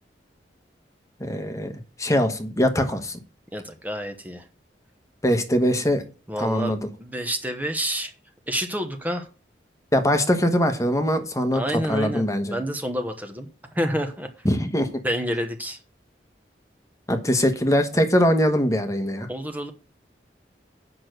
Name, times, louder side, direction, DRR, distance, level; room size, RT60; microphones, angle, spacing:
voice 1, 1.2-1.7 2.0-3.2 5.2-6.0 6.4-6.9 9.9-11.6 11.9-12.6 14.4-15.0 17.1-19.3, equal, 20° left, 7 dB, 1.2 m, -22 dB
voice 2, 3.5-4.5 6.3-8.1 8.5-9.3 11.5-14.5 15.0-15.8 19.3-19.7, equal, 10° right, 5 dB, 1.0 m, -29 dB
8.6 x 6.1 x 6.5 m, 0.34 s
head